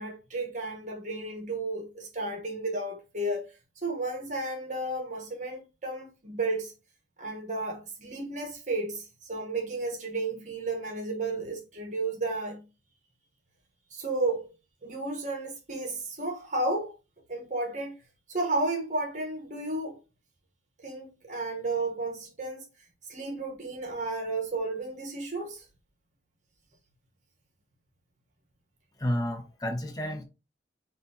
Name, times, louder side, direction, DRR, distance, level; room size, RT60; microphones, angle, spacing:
voice 1, 0.0-6.7 7.2-12.7 13.9-14.5 14.8-17.0 17.3-18.0 18.3-20.0 20.8-22.7 23.1-25.7, right 2 dB, 40° right, 1.1 m, -33 dB
voice 2, 29.0-30.2, left 1 dB, 20° left, 0.9 m, -31 dB
6.0 x 2.6 x 2.8 m
head